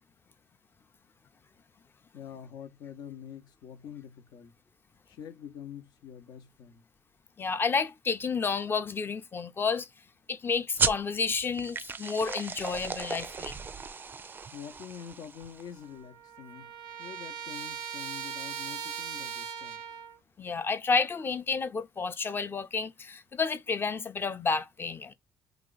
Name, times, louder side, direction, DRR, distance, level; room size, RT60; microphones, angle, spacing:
voice 1, 2.1-4.5 5.1-6.8 14.5-19.8, left 8 dB, 75° left, 0.9 m, -46 dB
voice 2, 7.4-9.9 10.3-13.6 20.4-25.1, left 5 dB, 30° left, 0.6 m, -30 dB
sound 1, 10.8-15.8, right 5 dB, 25° right, 0.4 m, -35 dB
Trumpet, 15.4-15.5 15.8-20.2, right 8 dB, 85° right, 0.5 m, -39 dB
2.9 x 2.4 x 3.8 m
cardioid pair, 100°, 7 cm